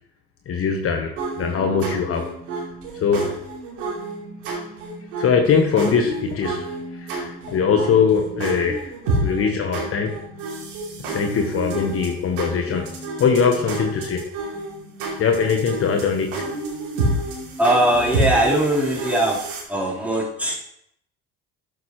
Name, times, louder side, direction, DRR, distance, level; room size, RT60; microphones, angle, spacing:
voice 1, 0.5-2.3 2.9-3.3 5.2-6.7 7.0-8.9 9.2-10.2 11.1-12.9 13.2-14.2 15.0-16.4 20.5-20.6, left 6 dB, 45° left, 4 dB, 1.2 m, -21 dB
sound 1, 1.2-19.6, right 2 dB, 80° right, 3.0 m, -30 dB
voice 2, 17.6-19.4 19.7-20.6, right 1 dB, 5° right, -6 dB, 4.1 m, -20 dB
11.5 x 8.1 x 3.2 m, 0.73 s
supercardioid pair, 80°, 32 cm